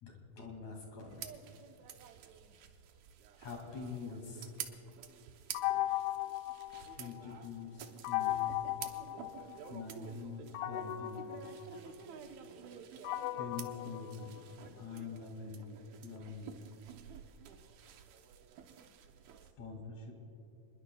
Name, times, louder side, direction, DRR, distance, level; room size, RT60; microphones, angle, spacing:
voice 1, 0.0-1.1 3.4-4.5 6.7-8.4 9.7-11.4 13.4-14.3 14.7-15.7 16.0-16.5 19.6-20.1, left 5 dB, 50° left, 1 dB, 3.4 m, -45 dB
sound 1, 1.1-19.5, right 8 dB, 80° right, 1.6 m, -51 dB
sound 2, 5.5-7.4 8.0-9.8 10.5-14.8, left 15 dB, 90° left, 2.6 m, -38 dB
28.0 x 21.0 x 2.3 m, 2.7 s
omnidirectional pair, 4.5 m